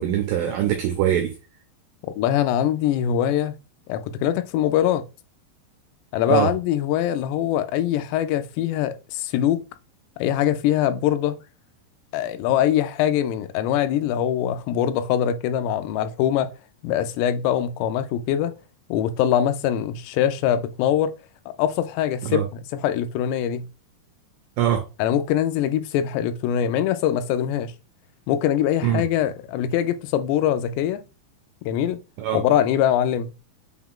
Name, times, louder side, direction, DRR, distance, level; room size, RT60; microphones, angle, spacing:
voice 1, 0.0-1.3 6.3-6.6 22.2-22.5 24.6-24.8 28.8-29.0 32.2-32.4, right 10 dB, 90° right, 2.0 m, -22 dB
voice 2, 2.2-3.5 3.9-5.0 6.1-9.6 10.2-11.4 12.1-16.5 16.8-18.5 18.9-21.1 21.6-23.7 25.0-27.7 28.3-31.0 31.7-32.0 32.3-33.3, left 10 dB, 90° left, 2.7 m, -23 dB
6.3 x 2.4 x 3.6 m
omnidirectional pair, 4.8 m